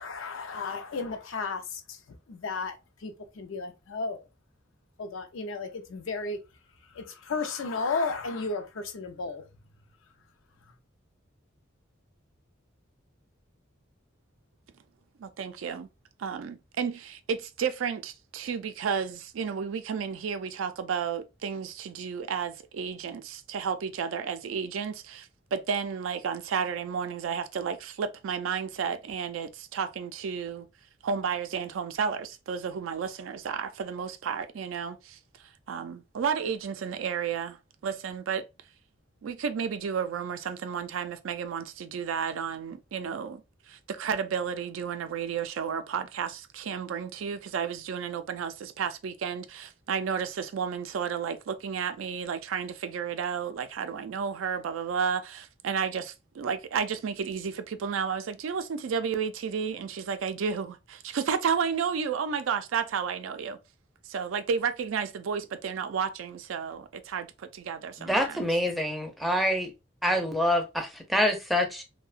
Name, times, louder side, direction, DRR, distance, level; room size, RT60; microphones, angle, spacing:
voice 1, 0.0-2.0 2.3-2.8 3.0-4.2 5.0-6.4 6.9-9.4, left 4 dB, 80° left, 0.5 m, -33 dB
voice 2, 15.2-15.9 16.2-30.7 31.0-35.2 35.7-38.5 39.2-43.4 43.7-63.6 64.1-68.4, right 6 dB, 80° right, 0.4 m, -32 dB
voice 3, 68.0-69.7 70.0-71.8, equal, ahead, 0.5 m, -26 dB
2.7 x 2.1 x 2.4 m
head